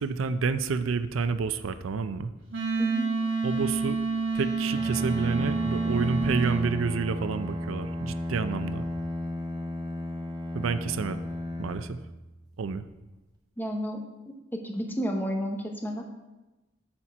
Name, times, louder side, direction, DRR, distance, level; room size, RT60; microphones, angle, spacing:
voice 1, 0.0-2.3 3.4-4.0 4.3-8.9 10.5-11.2 11.6-12.0 12.6-12.8, right 5 dB, 90° right, 12 dB, 0.5 m, -29 dB
Wind instrument woodwind instrument, 2.5-6.7, right 4 dB, 70° right, 1.3 m, -28 dB
voice 2, 2.8-3.2 13.6-16.1, equal, 10° left, 2 dB, 0.8 m, -32 dB
Bowed string instrument, 4.7-12.7, left 1 dB, 20° right, 0.8 m, -34 dB
8.7 x 4.3 x 5.9 m, 1.1 s
head